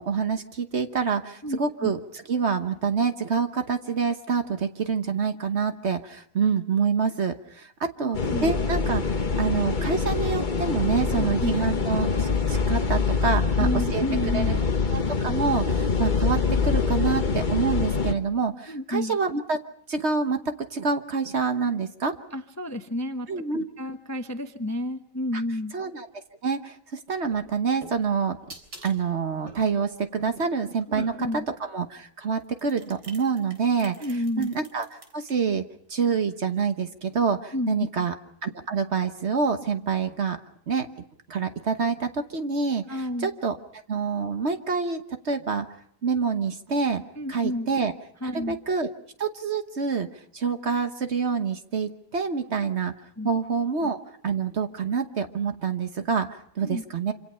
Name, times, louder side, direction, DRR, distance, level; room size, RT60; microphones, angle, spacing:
voice 1, 0.0-14.0 14.3-14.4 14.9-19.6 19.9-20.4 20.7-22.1 23.3-23.6 25.7-26.1 26.4-28.4 28.8-33.9 34.4-34.9 35.1-35.6 35.9-38.1 38.4-40.4 40.7-40.9 41.3-43.6 43.9-45.7 46.0-47.0 47.3-47.9 48.2-48.9 49.2-50.1 50.3-52.9 53.2-54.0 54.2-56.3 56.6-57.1, right 5 dB, 45° right, 8 dB, 1.3 m, -27 dB
voice 2, 1.4-1.9 8.0-8.5 11.1-11.5 13.6-14.6 18.7-19.2 22.3-23.3 23.8-25.7 30.9-31.4 34.0-34.5 37.5-37.9 42.9-43.3 47.2-47.7 48.2-48.6 52.6-52.7 53.2-53.3 56.6-56.8, left 1 dB, 15° left, 7 dB, 0.7 m, -30 dB
sound 1, 8.1-18.1, left 5 dB, 30° left, 1.2 m, -25 dB
sound 2, 27.2-31.5 32.3-35.3, right 2 dB, 80° right, 4.4 m, -47 dB
26.5 x 26.0 x 5.6 m, 0.68 s
omnidirectional pair, 1.8 m